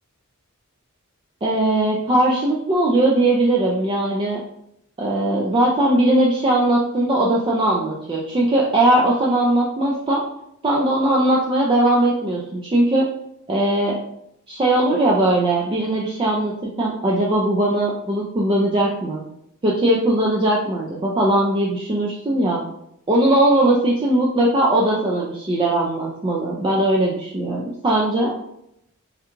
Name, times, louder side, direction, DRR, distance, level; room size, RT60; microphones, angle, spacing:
voice 1, 1.4-4.4 5.0-10.2 10.6-13.1 13.5-14.0 14.5-19.2 19.6-22.6 23.1-28.3, right 1 dB, 25° right, -3 dB, 0.4 m, -19 dB
3.6 x 2.2 x 3.0 m, 0.77 s
head